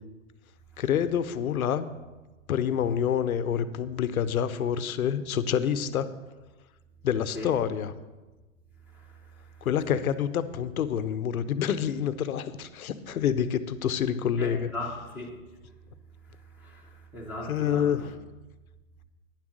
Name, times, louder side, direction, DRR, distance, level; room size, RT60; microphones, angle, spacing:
voice 1, 0.8-1.9 2.5-6.1 7.0-7.9 9.6-14.7 17.5-18.0, left 8 dB, 85° left, 0.8 m, -27 dB
voice 2, 8.9-10.0 14.4-15.7 16.2-18.1, left 1 dB, 5° right, 1.2 m, -40 dB
9.9 x 7.4 x 6.4 m
hypercardioid pair, 145°, 42 cm